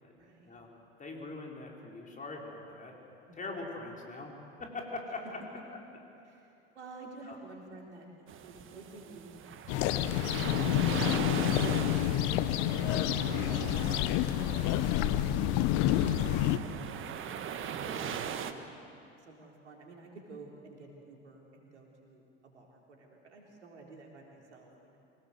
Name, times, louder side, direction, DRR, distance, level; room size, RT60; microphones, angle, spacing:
voice 1, 0.2-0.6 3.3-3.7 6.3-8.1 8.4-10.4 10.9-17.1 17.6-18.7 19.2-25.0, right 2 dB, 85° right, 0 dB, 3.8 m, -52 dB
voice 2, 1.0-2.9 3.3-4.3 4.6-5.4 7.3-7.4 17.9-18.0, left 3 dB, 25° left, 0 dB, 4.6 m, -42 dB
sound 1, 8.3-18.5, right 8 dB, 35° right, 1.5 m, -40 dB
sound 2, 9.7-16.6, left 12 dB, 55° left, 1.1 m, -28 dB
25.5 x 18.0 x 8.0 m, 2.7 s
hypercardioid pair, 80°, 34 cm